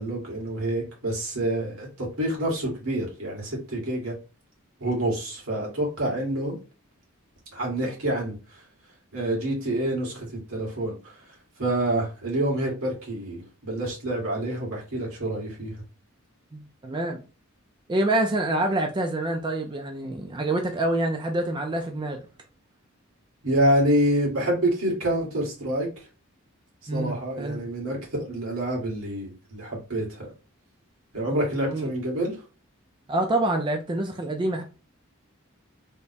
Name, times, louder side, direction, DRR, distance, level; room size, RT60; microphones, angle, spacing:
voice 1, 0.0-4.2 4.8-6.6 7.5-8.4 9.1-11.0 11.6-15.8 23.4-25.9 26.9-30.3 31.1-32.4, right 1 dB, 80° right, 1.8 m, -27 dB
voice 2, 16.5-17.2 17.9-22.2 26.9-27.6 31.7-31.9 33.1-34.6, right 1 dB, 20° right, 0.4 m, -26 dB
3.4 x 2.1 x 4.1 m
head